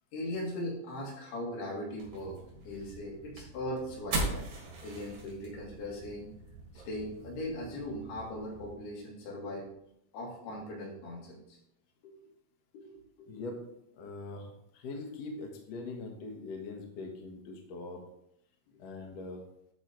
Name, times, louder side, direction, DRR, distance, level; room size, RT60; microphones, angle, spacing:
voice 1, 0.1-4.5 4.8-6.3 6.7-9.7 10.1-11.6 12.0-12.3 12.7-13.3, left 1 dB, 80° left, -3 dB, 4.3 m, -39 dB
sound 1, 2.0-8.7, right 2 dB, 60° right, 3.6 m, -41 dB
voice 2, 13.3-13.6 13.9-18.0 18.8-19.4, left 3 dB, 60° left, 1 dB, 1.9 m, -42 dB
11.5 x 4.0 x 4.5 m, 0.76 s
omnidirectional pair, 4.5 m